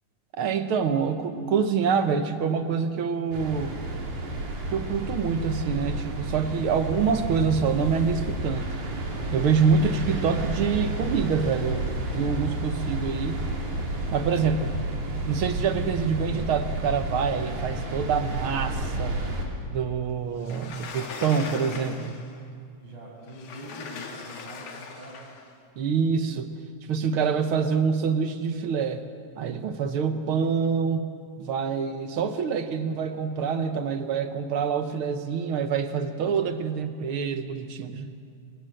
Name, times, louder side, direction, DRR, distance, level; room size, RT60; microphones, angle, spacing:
voice 1, 0.4-3.8 4.7-8.7 9.3-13.4 14.1-14.7 15.3-19.2 19.7-22.1 25.8-26.6 26.9-29.0 29.4-31.1 31.4-38.1, right 6 dB, 60° right, 9 dB, 1.5 m, -26 dB
sound 1, 3.3-19.5, right 1 dB, 85° right, 4.2 m, -31 dB
Sliding door, 20.4-22.4 23.3-25.5, left 5 dB, 90° left, 3.3 m, -39 dB
voice 2, 21.2-21.8 22.8-25.3, right 1 dB, 35° right, -2 dB, 6.8 m, -44 dB
27.0 x 17.5 x 7.8 m, 2.4 s
omnidirectional pair, 3.3 m